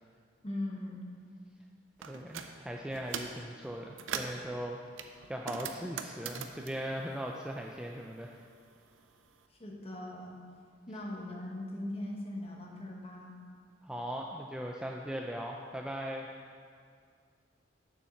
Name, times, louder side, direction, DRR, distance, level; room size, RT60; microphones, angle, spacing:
voice 1, 0.4-1.0 9.6-10.4 10.9-13.3, left 1 dB, 30° left, -1 dB, 1.2 m, -39 dB
sound 1, 2.0-2.5 2.9-3.4 3.8-4.4 5.0-7.9 8.2-9.3, right 6 dB, 90° right, 0.6 m, -41 dB
voice 2, 2.1-4.8 5.3-8.4 13.8-16.3, equal, 5° right, 0 dB, 0.3 m, -39 dB
7.2 x 7.1 x 5.8 m, 2.2 s
head